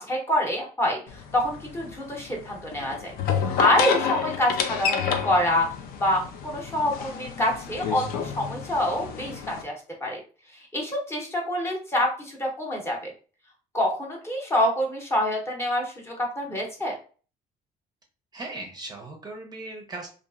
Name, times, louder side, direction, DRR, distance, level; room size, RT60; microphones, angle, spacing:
voice 1, 0.0-3.1 3.6-5.7 6.0-9.7 10.0-10.2 10.7-13.1 13.7-16.9, left 1 dB, 15° left, 0 dB, 0.7 m, -26 dB
sound 1, 1.1-9.6, left 7 dB, 75° left, 0.4 m, -29 dB
voice 2, 18.3-20.1, right 2 dB, 25° right, 2 dB, 0.5 m, -38 dB
2.8 x 2.4 x 2.4 m, 0.38 s
cardioid pair, 145°, 16 cm